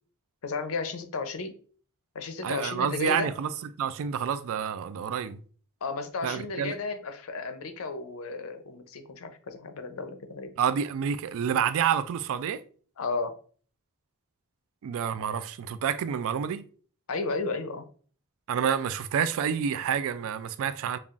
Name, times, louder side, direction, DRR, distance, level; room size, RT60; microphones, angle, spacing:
voice 1, 0.4-1.5 2.1-3.3 5.8-10.5 13.0-13.4 17.1-17.8, left 4 dB, 65° left, 0.6 m, -33 dB
voice 2, 2.4-3.5 3.8-5.4 6.2-6.7 10.6-12.6 14.8-16.6 18.5-21.0, right 8 dB, 65° right, 0.3 m, -28 dB
5.4 x 2.3 x 2.4 m
head